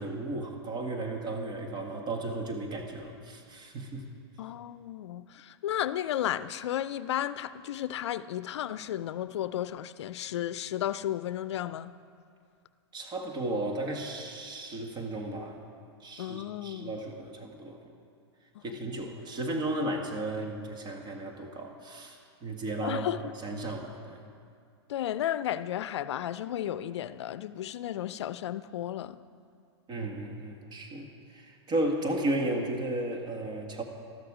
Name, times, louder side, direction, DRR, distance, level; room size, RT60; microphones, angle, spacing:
voice 1, 0.0-4.1 12.9-15.6 16.0-17.9 18.6-23.1 23.4-24.2 29.9-33.8, right 1 dB, 30° right, 1.7 m, -34 dB
voice 2, 4.4-12.0 16.2-17.0 18.5-18.8 22.8-23.2 24.9-29.2, left 11 dB, 80° left, 0.5 m, -33 dB
13.0 x 13.0 x 4.9 m
hypercardioid pair, 125°, 14 cm